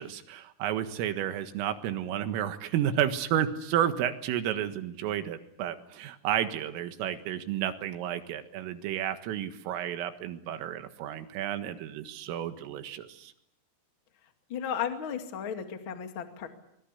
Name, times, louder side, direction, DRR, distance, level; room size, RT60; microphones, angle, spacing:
voice 1, 0.0-13.3, right 10 dB, 85° right, 9 dB, 4.2 m, -31 dB
voice 2, 14.5-16.5, left 8 dB, 40° left, 6 dB, 1.9 m, -34 dB
25.0 x 21.5 x 8.4 m, 0.76 s
omnidirectional pair, 5.7 m